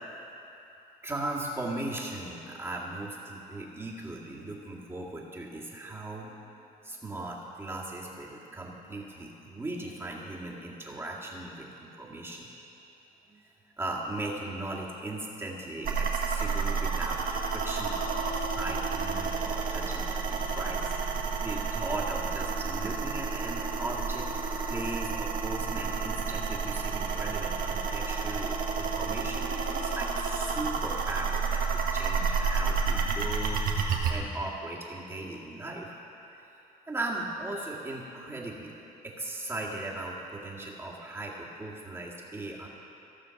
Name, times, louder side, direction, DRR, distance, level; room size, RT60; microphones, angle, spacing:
voice 1, 1.0-6.4 6.8-12.5 13.3-13.5 13.8-24.3 24.7-36.0 36.4-36.5 36.9-38.7 39.0-42.7, right 2 dB, 15° right, -3 dB, 1.9 m, -38 dB
sound 1, 15.8-34.1, right 5 dB, 55° right, 1.4 m, -30 dB
15.5 x 6.8 x 5.9 m, 2.9 s
cardioid pair, 110°, 17 cm